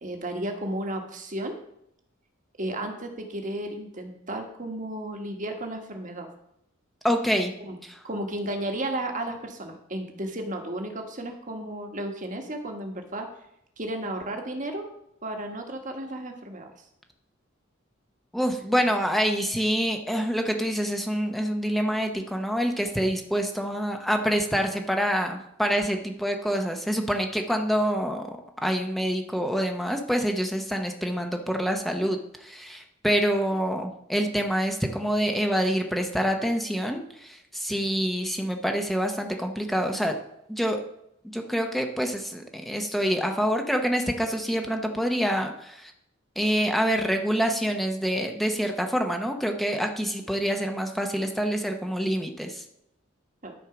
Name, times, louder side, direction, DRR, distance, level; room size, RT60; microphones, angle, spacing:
voice 1, 0.0-1.6 2.6-6.3 7.6-7.8 8.0-13.3 13.8-14.9 15.2-16.9 53.4-53.5, right 1 dB, 40° right, 4 dB, 1.4 m, -33 dB
voice 2, 7.0-7.5 7.8-8.0 18.3-40.2 40.5-40.8 41.2-45.9 46.4-52.6, equal, ahead, 4 dB, 0.8 m, -26 dB
12.5 x 4.5 x 6.0 m, 0.77 s
head